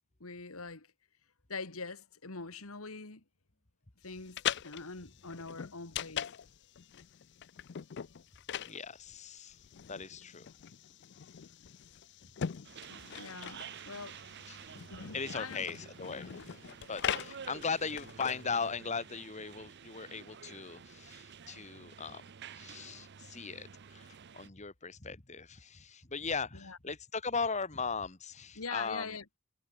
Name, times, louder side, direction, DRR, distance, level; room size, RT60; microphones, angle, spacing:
voice 1, 0.2-0.9 1.5-3.2 4.0-6.4 12.9-15.7 26.5-26.8 28.6-29.2, left 4 dB, 75° left, 2.1 m, -44 dB
sound 1, 4.1-18.7, left 9 dB, 50° left, 0.4 m, -41 dB
voice 2, 8.7-9.6 9.9-10.5 14.5-14.7 15.1-16.6 16.9-22.2 22.5-29.2, left 5 dB, 30° left, 1.7 m, -38 dB
sound 2, 12.6-24.5, right 7 dB, 50° right, 0.6 m, -50 dB
head